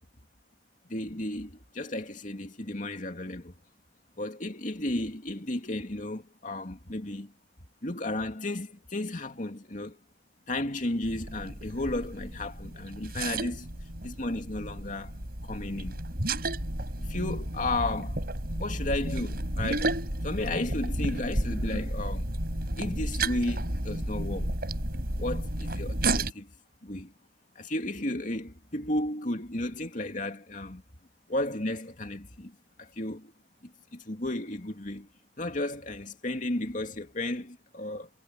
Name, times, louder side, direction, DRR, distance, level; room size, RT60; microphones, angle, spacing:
voice 1, 0.9-3.5 4.2-7.3 7.8-10.0 10.5-13.7 14.0-15.1 15.4-16.0 17.0-18.2 18.6-20.0 20.2-22.3 22.8-24.5 25.2-26.5 26.8-27.1 27.6-30.8 31.3-33.3 33.6-35.1 35.4-38.1, left 1 dB, 45° left, 2.5 m, -33 dB
sound 1, 11.0-26.3, right 1 dB, 60° right, 5.9 m, -32 dB
head